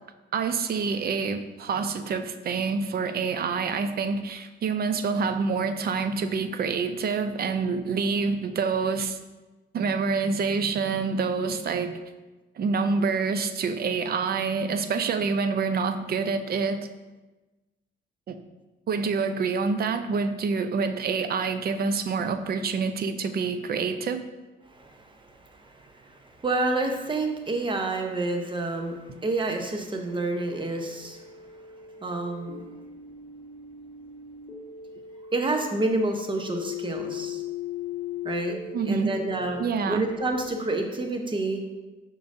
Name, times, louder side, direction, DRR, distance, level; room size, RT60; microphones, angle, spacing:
voice 1, 0.3-9.2 9.7-12.0 12.6-16.9 18.3-18.4 18.9-24.2 38.7-39.1 39.6-40.1, right 5 dB, 50° right, 9 dB, 0.5 m, -27 dB
voice 2, 24.7-31.2 32.0-32.6 35.3-37.4 38.2-38.6 38.9-39.6 39.9-41.6, right 2 dB, 25° right, 4 dB, 0.9 m, -29 dB
sound 1, 27.3-40.5, left 7 dB, 20° left, 1.5 m, -40 dB
6.9 x 5.4 x 2.6 m, 1.2 s
cardioid pair, 90°, 20 cm